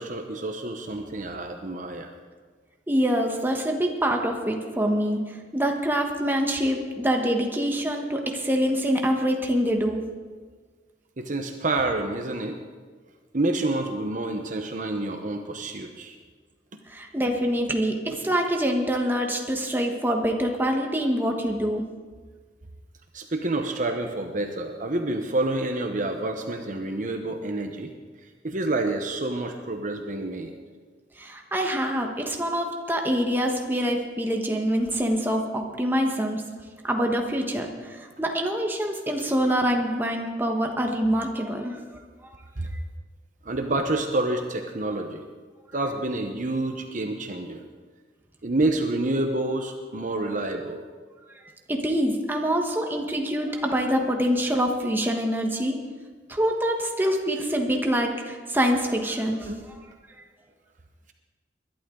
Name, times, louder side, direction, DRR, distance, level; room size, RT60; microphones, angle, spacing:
voice 1, 0.0-2.1 11.2-12.6 13.3-16.1 23.1-27.9 28.4-30.5 42.6-42.7 43.4-45.2 45.7-47.6 48.4-50.8 59.5-59.6, right 2 dB, 45° right, 5 dB, 1.0 m, -28 dB
voice 2, 2.9-10.0 16.9-21.8 31.2-36.4 36.8-41.8 51.7-55.8 56.3-59.5, equal, 10° right, 2 dB, 1.3 m, -25 dB
21.5 x 11.5 x 3.9 m, 1.5 s
head